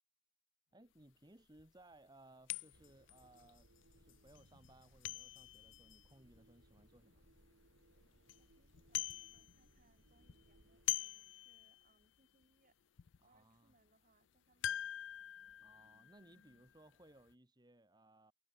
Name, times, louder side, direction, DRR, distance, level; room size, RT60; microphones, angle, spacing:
voice 1, 0.7-7.3 13.2-13.7 15.6-18.3, right 1 dB, 20° right, 1.8 m, -64 dB
sound 1, 1.0-1.1 1.6-1.7 2.5-7.2 7.7-7.8 8.1-8.4 8.7-9.8 10.1-12.0 12.4-12.5 13.0-13.2 14.6-17.0 17.3-17.4, left 13 dB, 75° left, 0.5 m, -44 dB
sound 2, 2.7-10.9, right 1 dB, 80° right, 3.7 m, -68 dB
voice 2, 8.4-12.8 13.2-14.8, right 2 dB, 40° right, 5.2 m, -75 dB
head